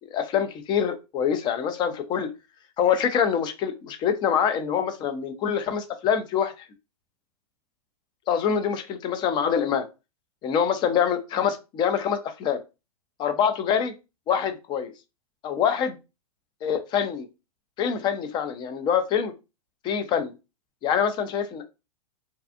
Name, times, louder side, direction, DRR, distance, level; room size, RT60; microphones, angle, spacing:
voice 1, 0.1-2.3 2.8-6.7 8.3-9.9 10.4-12.6 13.2-13.9 14.3-14.9 15.4-16.0 16.6-17.3 17.8-19.3 19.8-20.3 20.8-21.6, left 8 dB, 25° left, 9 dB, 0.4 m, -25 dB
2.6 x 2.3 x 2.4 m, 0.27 s
hypercardioid pair, 120°, 19 cm